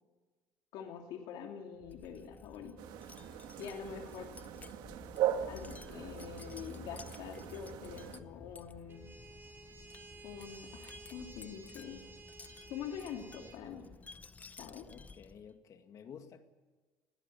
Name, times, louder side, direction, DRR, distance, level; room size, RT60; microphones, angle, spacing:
voice 1, 0.7-2.8 3.6-4.3 5.5-9.1 10.2-12.0 12.7-13.9 14.6-14.9, left 8 dB, 75° left, 2.9 m, -45 dB
Wind chime, 1.8-15.5, left 4 dB, 20° left, 0.7 m, -53 dB
sound 1, 2.8-8.2, right 11 dB, 75° right, 1.6 m, -39 dB
sound 2, 8.9-13.6, right 4 dB, 30° right, 5.3 m, -54 dB
voice 2, 14.9-16.5, left 7 dB, 45° left, 2.2 m, -52 dB
21.5 x 16.5 x 8.5 m
cardioid pair, 135°, 8 cm